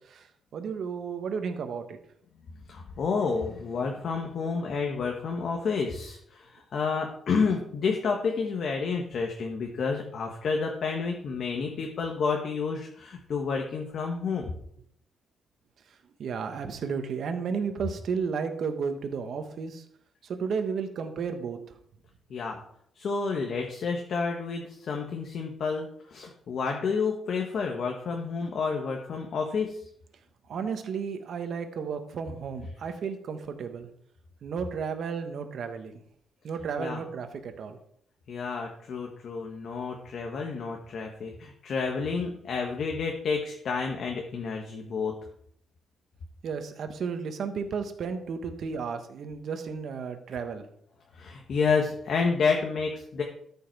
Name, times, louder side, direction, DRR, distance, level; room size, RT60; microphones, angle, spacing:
voice 1, 0.5-2.0 16.2-19.8 20.2-21.6 30.5-33.9 34.4-35.9 36.4-37.8 46.4-50.6, right 6 dB, 55° right, 7 dB, 1.2 m, -33 dB
voice 2, 2.7-14.5 22.3-22.6 23.0-29.8 36.8-37.0 38.3-45.1 51.1-53.2, left 5 dB, 50° left, 2 dB, 1.3 m, -30 dB
13.0 x 5.5 x 4.6 m, 0.67 s
cardioid pair, 155°, 0 cm